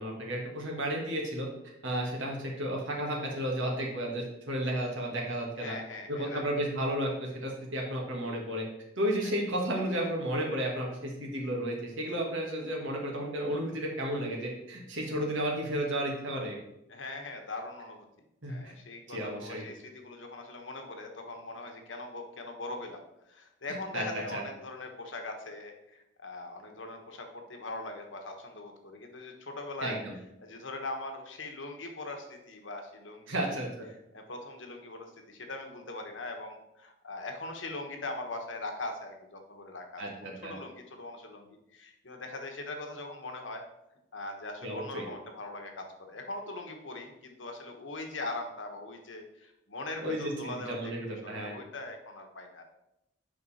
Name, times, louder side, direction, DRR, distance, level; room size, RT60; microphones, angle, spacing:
voice 1, 0.0-1.5 1.8-5.7 6.1-8.6 9.0-16.6 18.4-18.8 19.1-19.6 23.9-24.0 24.3-24.4 29.8-30.1 33.3-33.9 40.0-40.5 44.6-45.0 50.0-51.5, right 1 dB, 75° right, -1 dB, 1.8 m, -33 dB
voice 2, 5.6-6.4 16.9-18.0 18.5-30.0 30.4-33.6 34.1-40.0 40.4-43.6 44.1-52.6, left 2 dB, 70° left, 4 dB, 1.3 m, -41 dB
8.0 x 5.3 x 4.3 m, 0.85 s
head